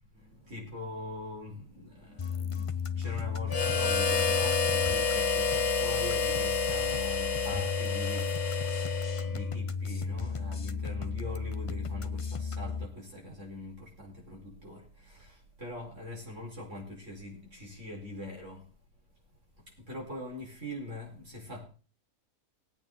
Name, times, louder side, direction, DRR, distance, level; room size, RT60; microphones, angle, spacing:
voice 1, 0.1-8.7 9.2-18.6 19.9-21.6, left 1 dB, 55° right, 5.4 m, -43 dB
sound 1, 2.2-12.9, left 6 dB, 35° left, 0.5 m, -34 dB
Harmonica, 3.5-9.5, left 4 dB, 90° left, 2.0 m, -29 dB
19.5 x 9.0 x 3.9 m
omnidirectional pair, 1.5 m